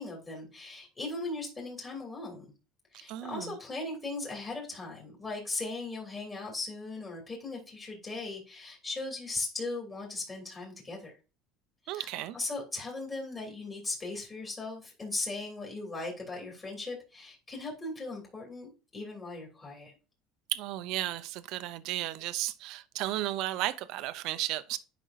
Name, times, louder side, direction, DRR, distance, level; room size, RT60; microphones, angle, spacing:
voice 1, 0.0-2.4 2.9-11.2 11.8-19.9, left 3 dB, 25° left, 2.7 m, -38 dB
voice 2, 3.1-3.6 11.9-12.4 20.5-24.8, right 15 dB, 60° right, 0.7 m, -34 dB
10.0 x 5.3 x 2.6 m
cardioid pair, 145°, 0 cm